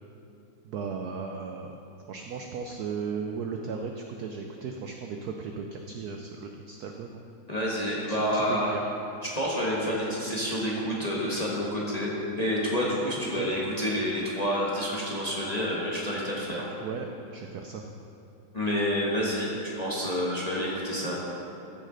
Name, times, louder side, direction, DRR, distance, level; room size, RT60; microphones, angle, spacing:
voice 1, 0.6-1.8 2.1-7.2 8.1-8.8 13.1-13.5 16.8-17.9, right 5 dB, 85° right, 3 dB, 0.8 m, -36 dB
voice 2, 7.5-8.7 9.2-16.7 18.5-21.4, equal, 25° left, -5 dB, 0.9 m, -29 dB
14.0 x 6.4 x 3.9 m, 2.8 s
omnidirectional pair, 2.3 m